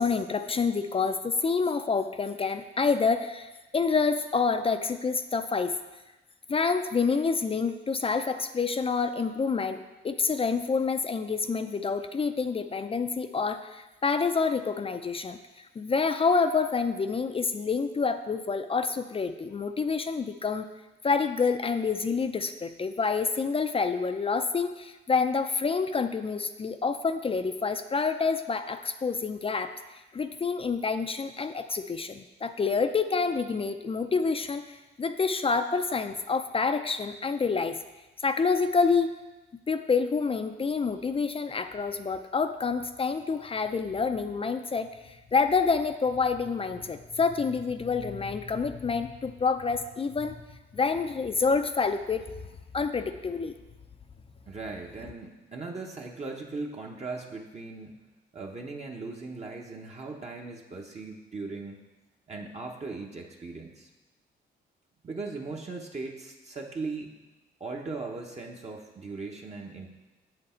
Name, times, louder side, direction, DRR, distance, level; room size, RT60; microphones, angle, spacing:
voice 1, 0.0-5.8 6.5-9.8 10.0-15.4 15.8-20.7 21.0-29.7 30.1-37.8 38.2-39.2 39.7-50.4 50.7-52.2 52.7-53.6, left 5 dB, 30° left, 8 dB, 0.5 m, -27 dB
voice 2, 54.5-58.0 58.3-61.8 62.3-63.9 65.0-67.1 67.6-69.9, right 3 dB, 35° right, 0 dB, 0.9 m, -38 dB
7.8 x 7.3 x 4.4 m, 1.1 s
cardioid pair, 90°, 20 cm